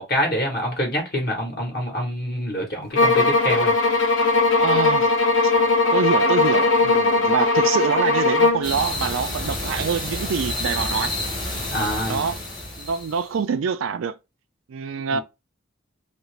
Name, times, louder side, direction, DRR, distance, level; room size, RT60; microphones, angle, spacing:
voice 1, 0.0-3.7 11.7-12.2 15.1-15.2, equal, 50° left, 1.1 m, -26 dB
sound 1, 2.9-8.7, left 3 dB, 70° left, 0.8 m, -19 dB
voice 2, 4.6-5.1 5.4-5.5 5.9-11.1 12.1-12.4 12.8-14.2 14.7-15.2, right 6 dB, 90° right, 0.4 m, -25 dB
sound 2, 8.6-13.3, left 1 dB, 25° left, 1.0 m, -29 dB
2.8 x 2.6 x 3.1 m
head